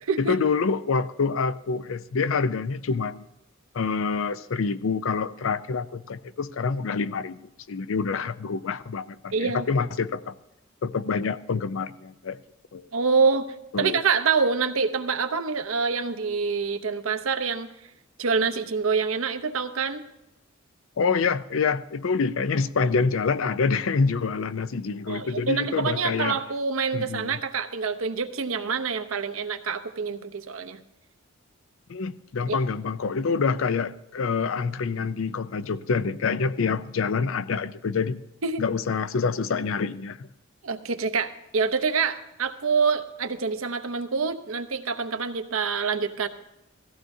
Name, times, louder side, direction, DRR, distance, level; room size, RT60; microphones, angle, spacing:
voice 1, 0.2-3.3 3.7-7.4 7.7-10.3 10.8-12.4 12.7-12.9 13.7-14.0 21.0-26.4 26.9-27.4 31.9-38.2 38.6-40.3, left 5 dB, 75° left, 15 dB, 0.5 m, -26 dB
voice 2, 9.3-9.7 12.9-13.5 13.8-17.7 18.2-20.0 25.1-30.8 32.5-32.6 38.4-38.6 40.6-46.3, right 5 dB, 90° right, 7 dB, 0.8 m, -26 dB
17.0 x 14.5 x 2.7 m, 0.89 s
head